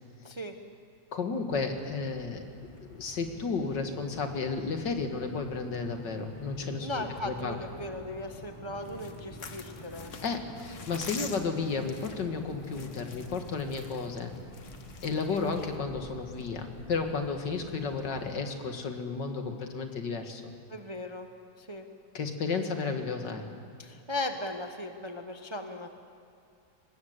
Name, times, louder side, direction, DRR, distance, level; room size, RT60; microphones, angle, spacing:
voice 1, 0.2-0.5 6.8-10.1 15.3-15.5 20.7-21.3 21.6-21.9 23.8-25.9, left 1 dB, 20° right, 5 dB, 0.9 m, -37 dB
voice 2, 1.1-2.4 2.9-7.6 10.2-14.3 15.0-20.4 22.1-23.5, left 4 dB, 65° left, 5 dB, 2.4 m, -33 dB
sound 1, 1.5-18.4, left 2 dB, 20° left, 1.5 m, -47 dB
sound 2, 8.8-15.8, left 5 dB, 45° left, 1.5 m, -46 dB
24.0 x 20.0 x 8.1 m, 2.5 s
omnidirectional pair, 2.0 m